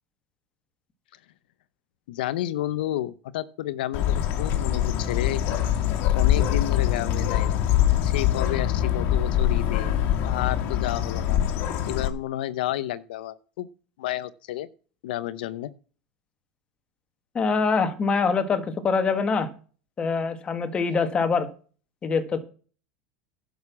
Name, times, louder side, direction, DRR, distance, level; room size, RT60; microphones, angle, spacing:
voice 1, 2.1-5.4 6.1-7.6 8.0-11.4 11.9-13.7 14.0-14.7 15.0-15.7, left 13 dB, 85° left, 0.8 m, -31 dB
Bird, 3.9-12.1, left 11 dB, 50° left, 2.0 m, -23 dB
voice 2, 17.4-19.5 20.0-21.5 22.0-22.4, left 5 dB, 20° left, 1.7 m, -24 dB
11.0 x 6.6 x 7.0 m
supercardioid pair, 150°, 5 cm